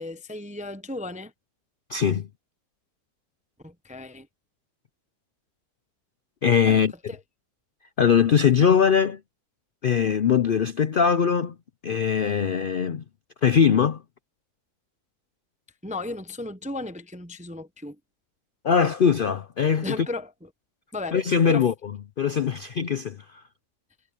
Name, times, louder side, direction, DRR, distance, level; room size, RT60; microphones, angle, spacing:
voice 1, 0.0-1.3 3.6-4.3 6.7-6.8 7.1-7.2 15.8-18.0 19.8-20.5 20.9-21.7, left 2 dB, 10° right, 0.5 m, -35 dB
voice 2, 1.9-2.3 6.4-6.9 8.0-9.2 9.8-11.5 11.8-13.0 13.4-14.0 18.6-19.9 21.1-21.7 22.2-23.2, left 7 dB, 60° left, 0.5 m, -21 dB
omnidirectional pair, 1.6 m